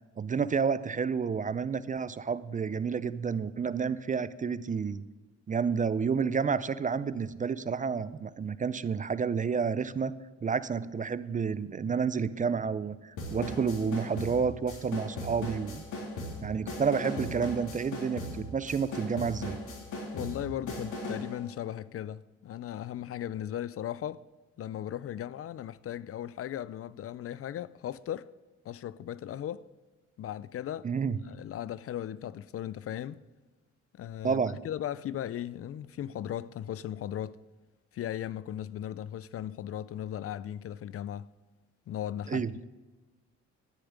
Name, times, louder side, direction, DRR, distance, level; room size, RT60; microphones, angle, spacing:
voice 1, 0.2-5.0 5.5-10.1 10.4-15.8 16.4-19.6 30.8-31.2 34.2-34.6 42.3-42.5, right 6 dB, 25° right, 0.4 m, -30 dB
sound 1, 13.2-21.3, left 1 dB, 80° left, 3.5 m, -38 dB
voice 2, 20.1-24.2 24.6-28.3 28.6-29.6 30.2-30.9 31.2-33.2 34.0-37.4 37.9-41.3 41.9-42.6, left 11 dB, 50° left, 0.4 m, -37 dB
11.5 x 6.9 x 9.6 m
cardioid pair, 90°, 30 cm